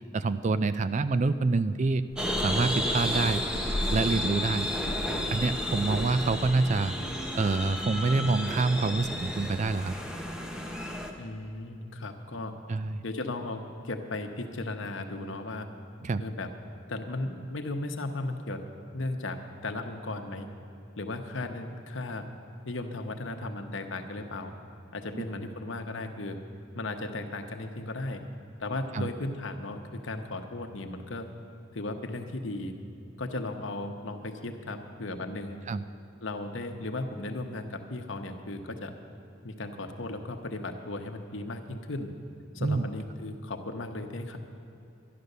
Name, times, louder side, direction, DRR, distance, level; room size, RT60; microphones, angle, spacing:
voice 1, 0.1-2.0 2.4-3.4 3.9-4.7 5.3-6.9 7.3-9.9 12.7-13.0 16.0-16.2 25.1-25.2 28.9-29.1 35.7-35.8 42.6-42.8, right 3 dB, 35° right, 13 dB, 0.4 m, -26 dB
sound 1, 2.2-11.1, equal, 5° right, 0.9 m, -32 dB
sound 2, 2.9-7.0, equal, 80° right, 1.5 m, -39 dB
voice 2, 11.2-12.5 13.0-15.7 16.2-16.5 16.9-18.6 18.9-20.5 21.0-22.3 22.7-24.5 24.9-26.4 26.7-28.2 28.6-31.3 31.7-32.7 33.2-35.6 36.2-38.9 39.4-42.1 42.5-44.4, left 2 dB, 70° left, 5 dB, 1.0 m, -36 dB
12.0 x 11.0 x 6.7 m, 2.8 s
head